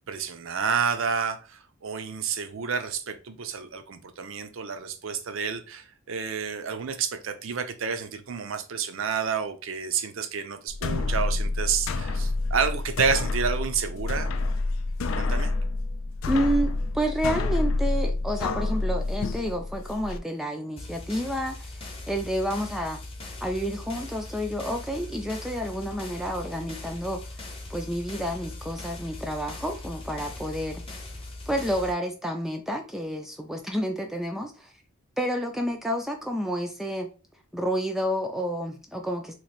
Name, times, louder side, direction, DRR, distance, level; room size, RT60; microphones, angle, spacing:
voice 1, 0.1-14.3 15.2-15.5, right 6 dB, 65° right, 0.5 m, -30 dB
sound 1, 10.7-20.2, left 3 dB, 70° left, 0.4 m, -28 dB
voice 2, 16.3-23.0 23.4-27.4 27.7-31.0 31.5-34.7 35.2-37.1 37.5-39.3, equal, ahead, 0.3 m, -30 dB
sound 2, 20.8-31.9, left 2 dB, 25° left, 0.8 m, -40 dB
3.0 x 2.5 x 4.0 m
head